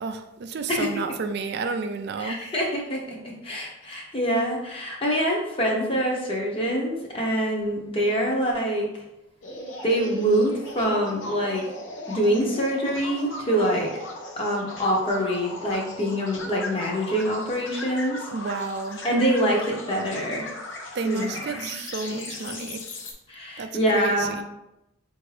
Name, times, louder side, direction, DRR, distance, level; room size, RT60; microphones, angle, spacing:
voice 1, 0.0-2.4 18.3-19.0 20.9-22.8 23.6-23.7 23.9-24.0 24.4-24.5, right 4 dB, 55° right, 7 dB, 0.3 m, -31 dB
voice 2, 2.2-9.0 9.8-11.7 12.1-13.9 14.4-18.3 19.0-20.6 21.0-21.7 22.1-22.6 23.3-24.3, equal, 25° left, -2 dB, 0.8 m, -25 dB
sound 1, 9.4-23.1, left 2 dB, 65° left, 0.7 m, -38 dB
4.9 x 2.6 x 3.2 m, 0.89 s
head